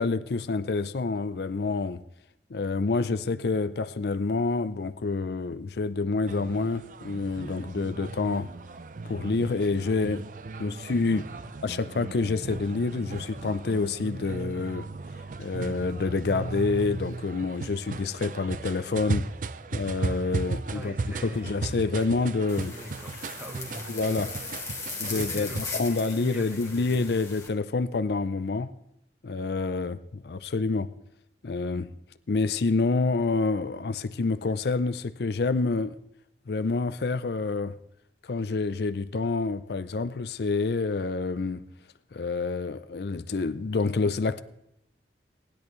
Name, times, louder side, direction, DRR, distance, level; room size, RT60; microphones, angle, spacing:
voice 1, 0.0-2.0 2.5-8.5 9.0-10.2 10.6-11.3 11.6-14.9 15.4-19.3 19.7-20.9 21.2-22.7 23.9-24.3 25.0-28.7 29.2-30.9 31.4-31.9 32.3-36.0 36.5-37.8 38.2-41.6 42.1-44.4, left 3 dB, 65° left, 0.5 m, -28 dB
sound 1, 6.3-25.6, right 3 dB, 45° right, 0.4 m, -36 dB
voice 2, 11.1-11.5 20.7-21.9 22.7-24.6 25.0-27.1, equal, 10° right, 1.2 m, -42 dB
sound 2, 22.5-27.5, left 4 dB, 15° left, 1.6 m, -38 dB
19.0 x 10.5 x 3.1 m
head